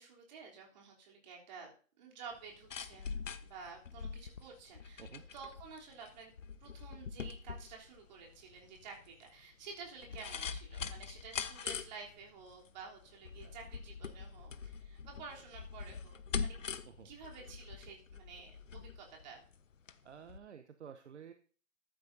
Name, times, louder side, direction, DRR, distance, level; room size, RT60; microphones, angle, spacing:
voice 1, 0.0-5.1 5.3-6.3 6.6-16.6 17.0-19.4, right 5 dB, 35° right, -1 dB, 3.4 m, -51 dB
sound 1, 2.3-20.0 20.3-20.4, left 6 dB, 70° left, 1.1 m, -44 dB
voice 2, 20.0-21.3, right 7 dB, 60° right, 9 dB, 1.0 m, -52 dB
14.0 x 12.0 x 2.7 m, 0.41 s
figure-of-eight pair, 145°, 40 cm